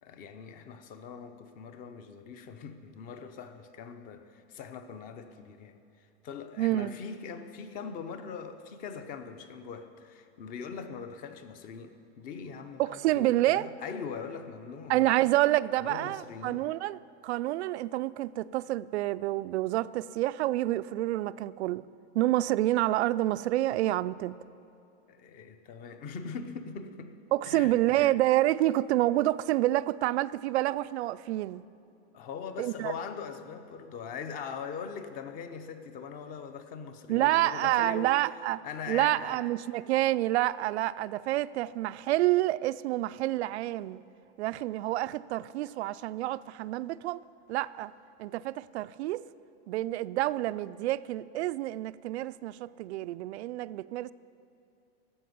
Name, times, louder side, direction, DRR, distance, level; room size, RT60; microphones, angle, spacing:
voice 1, 0.0-15.1 15.8-16.7 25.1-27.1 27.5-28.1 32.1-38.2 38.6-39.4, left 6 dB, 25° left, 0.7 m, -41 dB
voice 2, 6.6-7.0 12.8-13.7 14.9-21.8 22.1-24.4 27.3-31.6 32.6-32.9 37.1-38.6 38.9-44.0 44.4-47.2 47.5-47.9 48.2-49.2 49.7-54.1, right 15 dB, 80° right, 0.5 m, -28 dB
13.5 x 7.7 x 9.4 m
supercardioid pair, 160°, 33 cm